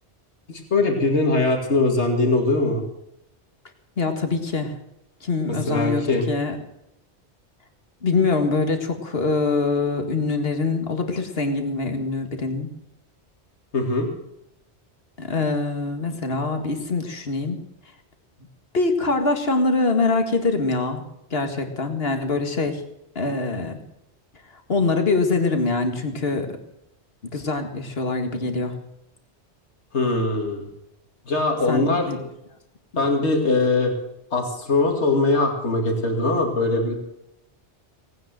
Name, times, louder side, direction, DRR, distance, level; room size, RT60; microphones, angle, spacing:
voice 1, 0.5-2.8 5.7-6.2 13.7-14.1 29.9-30.7 31.3-32.3 33.0-33.9 34.3-37.0, left 2 dB, 75° left, 3 dB, 2.7 m, -21 dB
voice 2, 4.0-4.8 5.2-6.6 8.0-12.7 15.2-17.6 18.7-21.0 21.3-22.8 23.2-23.8 24.7-26.6 27.3-28.7 31.7-32.2 32.9-33.1, left 3 dB, 60° left, 6 dB, 2.2 m, -24 dB
18.5 x 9.3 x 7.7 m, 0.85 s
omnidirectional pair, 1.2 m